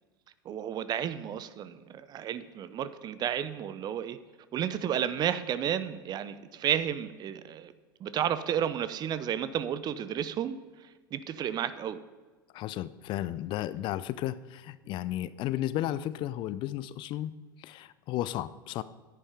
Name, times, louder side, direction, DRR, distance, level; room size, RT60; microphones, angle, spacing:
voice 1, 0.4-4.2 4.5-7.7 8.0-10.6 11.1-12.0, right 9 dB, 35° right, 14 dB, 0.7 m, -32 dB
voice 2, 12.5-17.3 17.6-18.8, left 13 dB, 45° left, 16 dB, 0.5 m, -33 dB
10.0 x 9.9 x 5.0 m, 1.4 s
figure-of-eight pair, 80°, 12 cm